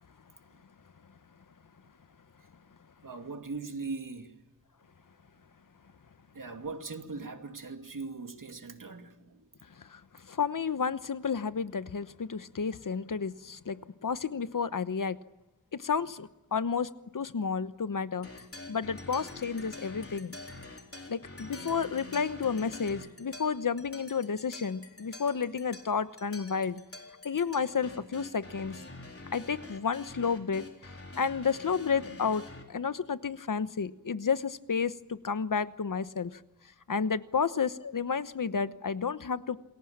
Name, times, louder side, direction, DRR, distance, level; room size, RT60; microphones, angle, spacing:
voice 1, 3.0-4.4 6.3-9.5, right 4 dB, 70° right, 2.5 m, -40 dB
voice 2, 9.8-15.2 15.7-20.3 21.1-26.8 27.2-28.8 29.3-30.6 31.2-36.4 36.9-39.6, left 6 dB, 70° left, 1.1 m, -31 dB
sound 1, 18.2-32.6, left 2 dB, 45° left, 4.1 m, -46 dB
28.0 x 21.0 x 7.5 m
wide cardioid pair, 80°, 33 cm